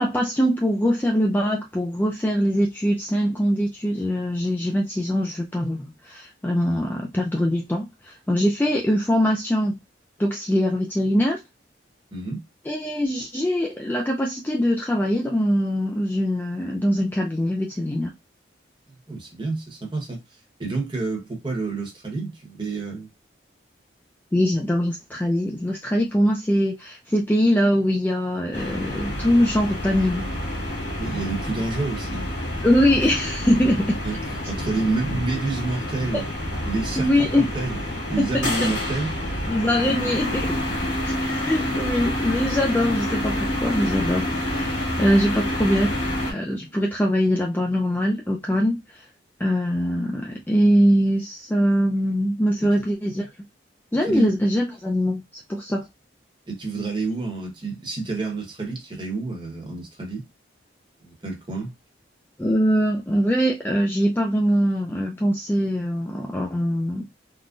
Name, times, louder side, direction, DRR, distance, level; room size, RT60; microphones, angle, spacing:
voice 1, 0.0-9.7 10.2-11.4 12.7-18.1 24.3-30.3 32.6-34.0 36.1-36.2 37.0-37.5 38.2-38.7 39.5-40.6 41.0-46.0 46.3-49.0 49.4-53.3 53.9-55.2 55.5-55.9 62.4-67.1, equal, 10° left, 0.3 m, -22 dB
voice 2, 12.1-12.4 19.1-20.2 20.6-23.1 31.0-32.3 34.0-34.2 34.5-36.2 36.7-37.2 37.5-37.8 38.1-39.2 54.1-54.3 56.5-60.2 61.0-61.7, right 3 dB, 25° right, 1.0 m, -28 dB
sound 1, 28.5-46.3, left 1 dB, 80° left, 1.6 m, -28 dB
3.7 x 2.1 x 2.5 m
head